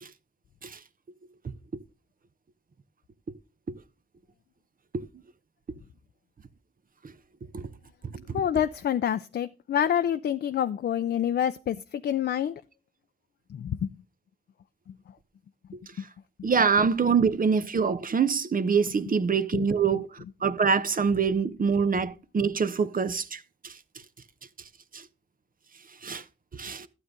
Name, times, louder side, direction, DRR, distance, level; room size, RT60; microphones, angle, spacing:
voice 1, 8.3-12.6 13.5-13.9 19.5-19.7, left 9 dB, 75° left, 0.5 m, -27 dB
voice 2, 16.4-20.1 20.4-23.7 24.9-25.0 26.0-26.2 26.5-26.9, right 5 dB, 55° right, 1.0 m, -25 dB
12.0 x 8.0 x 3.7 m
cardioid pair, 50°, 17 cm